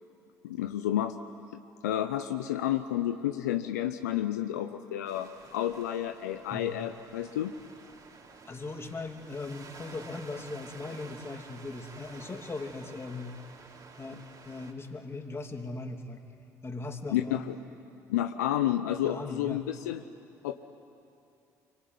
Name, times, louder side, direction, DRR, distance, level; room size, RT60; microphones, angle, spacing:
voice 1, 0.4-1.2 1.5-7.5 17.1-17.6 18.1-20.0 20.4-20.5, left 12 dB, 85° left, 8 dB, 0.7 m, -31 dB
sound 1, 5.1-14.7, right 4 dB, 45° right, 3.2 m, -51 dB
voice 2, 8.5-13.4 14.0-16.2 16.6-17.5 19.0-19.6, left 3 dB, 30° left, 4 dB, 2.9 m, -39 dB
25.5 x 23.5 x 9.5 m, 2.7 s
hypercardioid pair, 60°, 9 cm